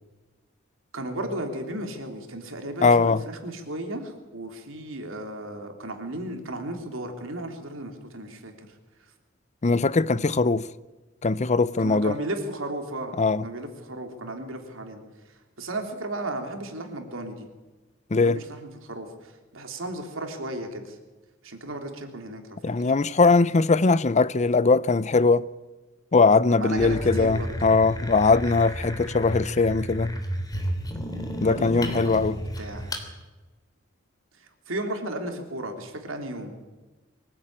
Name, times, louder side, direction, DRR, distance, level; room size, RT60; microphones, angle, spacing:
voice 1, 0.9-8.7 11.8-13.1 13.4-15.0 15.6-17.5 18.2-21.0 21.4-22.7 26.5-27.6 31.4-33.0 34.4-36.5, right 1 dB, 75° right, 3.4 m, -35 dB
voice 2, 2.8-3.2 9.6-10.7 11.2-12.2 13.2-13.4 18.1-18.4 22.6-25.5 26.1-30.1 31.4-32.4, left 4 dB, 35° left, 0.6 m, -21 dB
sound 1, 26.8-33.1, equal, 20° left, 3.3 m, -32 dB
24.0 x 16.0 x 8.9 m
head